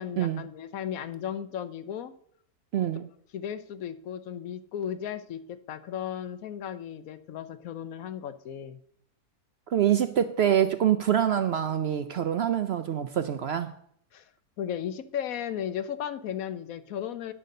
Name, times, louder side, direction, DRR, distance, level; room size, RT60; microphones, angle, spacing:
voice 1, 0.0-2.1 2.7-2.9 3.3-8.8 14.1-14.3 14.6-17.3, left 9 dB, 75° left, 12 dB, 1.1 m, -35 dB
voice 2, 2.7-3.1 9.7-13.7, right 10 dB, 65° right, 10 dB, 0.6 m, -25 dB
10.0 x 6.5 x 6.5 m, 0.67 s
omnidirectional pair, 1.5 m